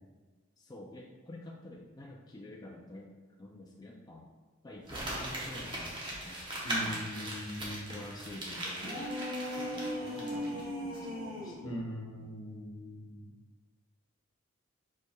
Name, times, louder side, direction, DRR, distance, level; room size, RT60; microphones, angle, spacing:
voice 1, 0.6-3.1 3.4-4.3 4.6-7.4 7.9-11.7, left 1 dB, 20° left, -2 dB, 0.3 m, -49 dB
Crumpling crinkling, 4.9-10.6 10.9-11.0, right 1 dB, 20° right, 0.8 m, -39 dB
voice 2, 6.6-8.1 11.6-13.3, equal, 75° left, -1 dB, 0.9 m, -40 dB
sound 1, 8.7-11.7, equal, 60° right, 1.2 m, -37 dB
4.6 x 4.5 x 2.3 m, 1.3 s
head